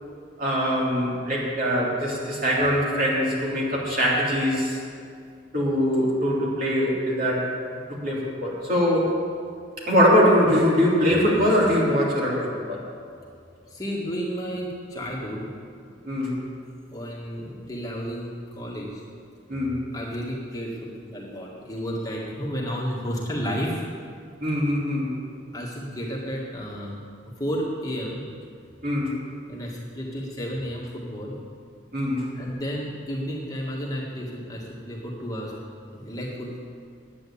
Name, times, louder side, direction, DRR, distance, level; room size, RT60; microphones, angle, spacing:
voice 1, 0.4-4.8 5.5-7.5 8.0-9.2 9.8-12.8 16.0-16.3 19.5-19.8 24.4-25.1 28.8-29.1 31.9-32.3, equal, 45° right, -5 dB, 3.3 m, -22 dB
voice 2, 13.7-15.5 16.9-19.0 19.9-24.1 25.5-26.9 27.4-28.3 29.5-31.4 32.4-35.6 35.8-36.6, equal, 20° left, -4 dB, 1.7 m, -32 dB
10.0 x 9.1 x 8.6 m, 2.3 s
head